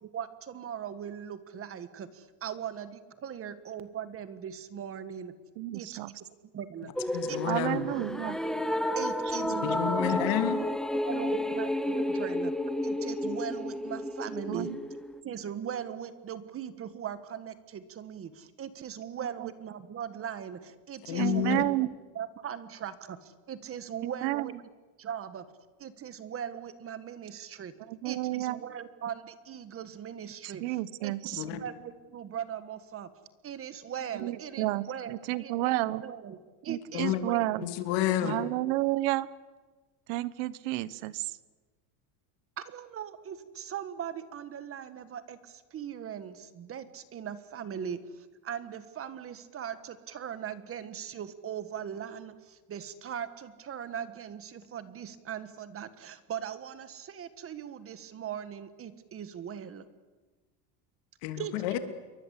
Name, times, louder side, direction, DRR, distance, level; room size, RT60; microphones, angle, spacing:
voice 1, 0.0-5.4 5.7-5.9 6.5-7.4 8.9-10.2 10.9-12.5 12.8-14.7 15.2-21.6 22.1-24.5 25.0-25.4 25.8-27.7 28.0-30.8 31.0-33.1 33.4-37.7 42.6-59.8 61.4-61.5, right 8 dB, 30° right, 13 dB, 1.6 m, -40 dB
voice 2, 5.6-6.1 7.4-8.4 9.4-9.6 14.5-14.8 19.4-19.5 21.1-21.9 24.0-24.5 27.9-28.6 30.4-31.4 34.1-36.0 36.7-37.6 38.2-39.3 40.1-41.3, right 18 dB, 60° right, 18 dB, 1.2 m, -31 dB
sound 1, 7.0-15.2, left 1 dB, ahead, 0.9 m, -31 dB
voice 3, 7.1-7.8 9.6-10.6 21.1-21.6 31.4-31.6 36.9-37.2 37.6-38.4 61.2-61.8, left 12 dB, 60° left, 9 dB, 2.9 m, -29 dB
28.5 x 23.0 x 8.3 m, 1.3 s
cardioid pair, 150°, 48 cm